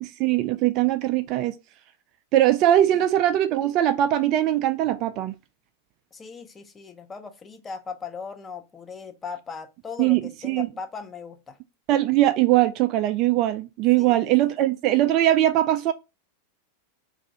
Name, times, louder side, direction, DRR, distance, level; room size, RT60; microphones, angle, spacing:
voice 1, 0.0-1.6 2.3-5.4 10.0-10.7 11.9-15.9, right 13 dB, 40° right, 0.3 m, -21 dB
voice 2, 6.1-11.6 14.0-14.5, left 5 dB, 20° left, 0.5 m, -38 dB
2.6 x 2.5 x 4.2 m
figure-of-eight pair, 90°, 0 cm